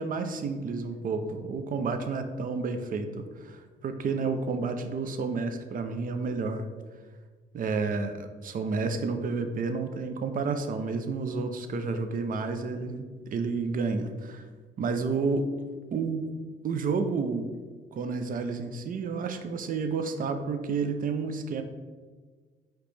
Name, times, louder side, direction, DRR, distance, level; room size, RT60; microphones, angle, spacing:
voice 1, 0.0-6.7 7.5-14.5 14.8-15.5 15.9-16.3 16.6-17.5 17.9-21.6, right 4 dB, 45° right, 7 dB, 0.5 m, -30 dB
4.9 x 2.9 x 3.2 m, 1.5 s
cardioid pair, 90°, 20 cm